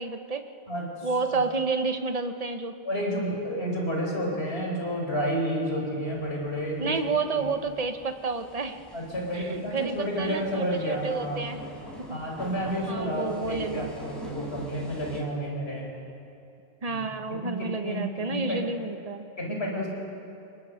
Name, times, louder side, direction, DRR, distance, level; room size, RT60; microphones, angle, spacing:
voice 1, 0.0-0.5 1.0-2.8 6.8-8.8 9.3-11.6 12.1-12.2 12.9-13.9 16.8-19.2, right 4 dB, 35° right, 8 dB, 1.1 m, -30 dB
voice 2, 0.7-1.4 2.8-7.4 8.9-11.4 12.1-15.9 16.9-17.0 17.4-18.6 19.4-19.9, equal, 70° left, -1 dB, 5.0 m, -31 dB
sound 1, 6.1-15.2, equal, ahead, 6.1 m, -45 dB
29.5 x 22.5 x 6.4 m, 2.8 s
omnidirectional pair, 1.1 m